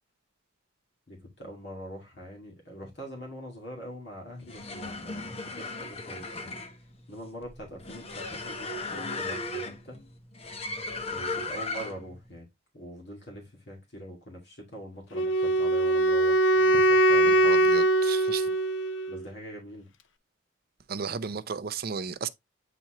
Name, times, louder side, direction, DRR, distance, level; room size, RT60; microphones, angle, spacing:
voice 1, 1.1-6.5 7.1-10.0 11.1-12.5 12.7-17.4 19.1-19.9, equal, 55° left, 2.2 m, -43 dB
sound 1, 4.3-12.1, left 2 dB, 30° left, 0.9 m, -36 dB
Wind instrument woodwind instrument, 15.1-19.2, right 1 dB, 75° left, 0.6 m, -22 dB
voice 2, 17.3-18.5 20.9-22.3, right 6 dB, 50° right, 0.5 m, -34 dB
8.9 x 4.2 x 3.0 m
head